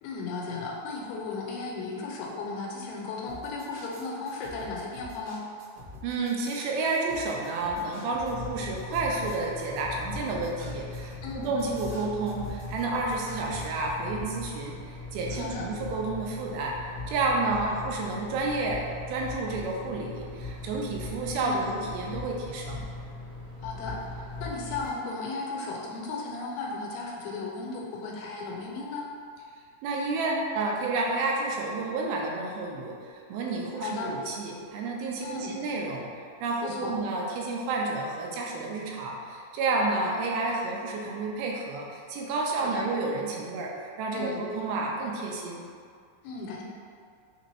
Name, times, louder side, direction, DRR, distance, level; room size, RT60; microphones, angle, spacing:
voice 1, 0.0-5.4 11.2-11.5 15.3-15.7 17.4-17.8 21.4-21.7 23.6-29.1 33.8-34.1 35.2-35.6 36.6-37.0 42.6-42.8 44.2-44.5 46.2-46.6, left 3 dB, 90° left, -2 dB, 2.6 m, -35 dB
sound 1, 3.3-13.9, left 2 dB, 65° right, 0.8 m, -47 dB
voice 2, 6.0-16.8 17.1-22.9 29.8-36.1 36.4-45.6, right 3 dB, 90° right, -1 dB, 2.5 m, -30 dB
sound 2, 8.3-24.9, left 2 dB, 70° left, 1.0 m, -40 dB
6.2 x 3.0 x 2.9 m, 2.2 s
omnidirectional pair, 4.3 m